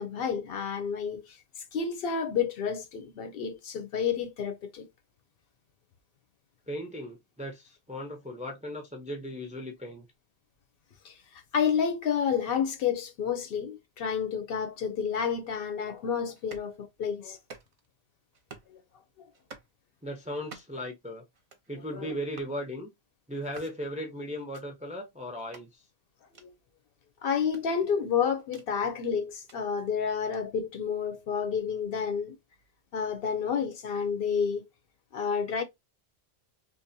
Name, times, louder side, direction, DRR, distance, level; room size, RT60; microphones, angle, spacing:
voice 1, 0.0-1.4 1.7-4.9 11.0-17.4 18.7-18.8 21.9-22.2 26.4-26.5 27.2-32.4 32.9-34.6 35.1-35.6, left 7 dB, 65° left, 0.7 m, -30 dB
voice 2, 6.7-10.1 20.0-21.2 21.7-22.9 23.3-25.8, equal, 10° right, 0.4 m, -37 dB
sound 1, 16.3-16.7 17.3-17.9 18.3-18.8 19.3-19.7 20.3-20.9 21.3-21.7 22.3-22.6 23.3-23.8 24.4-24.6 25.4-25.7 26.3-26.5 27.4-28.7 29.3-29.6 30.3-30.4, right 4 dB, 50° right, 0.6 m, -50 dB
2.7 x 2.1 x 2.6 m
omnidirectional pair, 1.1 m